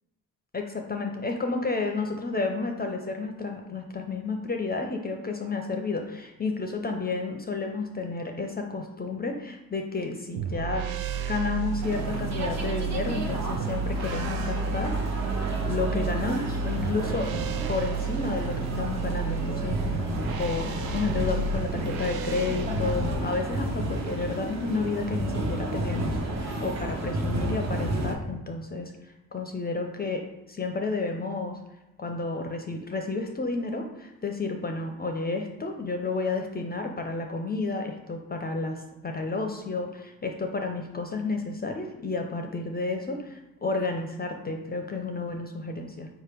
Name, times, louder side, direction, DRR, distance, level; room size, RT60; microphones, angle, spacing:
voice 1, 0.5-10.8 11.3-15.3 15.6-17.3 17.7-31.6 32.0-46.1, left 3 dB, 25° left, 3 dB, 0.5 m, -31 dB
sound 1, 10.3-23.2, right 4 dB, 75° right, 0.5 m, -31 dB
sound 2, 11.8-28.1, right 1 dB, 45° right, 0.9 m, -32 dB
4.4 x 2.9 x 3.4 m, 0.96 s
supercardioid pair, 60°, 37 cm